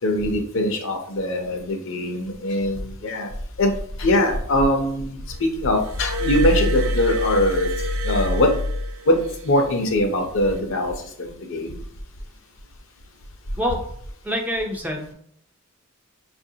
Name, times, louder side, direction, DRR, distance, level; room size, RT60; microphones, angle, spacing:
voice 1, 0.0-8.6 9.1-11.8, left 1 dB, 65° left, 4 dB, 0.6 m, -22 dB
Glass, 5.8-9.4 10.4-10.6, left 1 dB, 65° right, 0.5 m, -25 dB
voice 2, 14.2-15.1, equal, 10° right, 2 dB, 0.4 m, -26 dB
5.5 x 2.5 x 2.7 m, 0.68 s
head